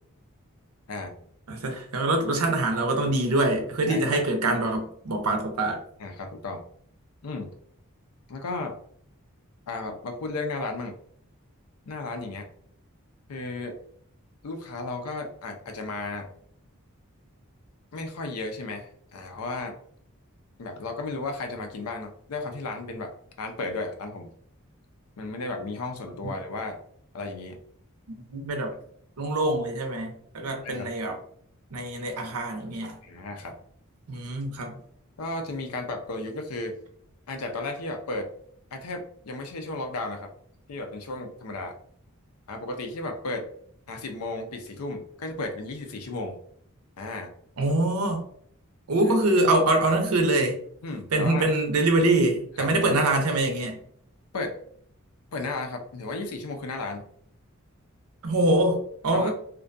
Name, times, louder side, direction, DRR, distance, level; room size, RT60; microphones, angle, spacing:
voice 1, 1.5-5.8 26.2-26.3 28.3-28.7 29.2-31.2 31.7-33.0 34.1-34.8 47.6-48.2 48.9-50.6 51.1-53.8 58.2-59.3, right 2 dB, 85° right, 4 dB, 0.6 m, -24 dB
voice 2, 3.9-4.2 6.0-6.6 7.2-7.5 8.3-8.8 9.7-11.0 11.9-12.5 13.3-13.8 14.4-16.3 17.9-19.8 20.6-24.3 25.2-26.8 27.1-27.6 30.6-30.9 33.0-33.6 35.2-36.8 37.3-38.3 38.7-40.3 40.7-41.8 42.5-43.5 43.9-46.4 47.0-47.3 49.0-49.1 50.8-51.5 52.6-53.0 54.3-54.6 55.3-57.0 59.1-59.3, left 2 dB, 85° left, 5 dB, 0.5 m, -34 dB
2.5 x 2.2 x 2.5 m, 0.63 s
head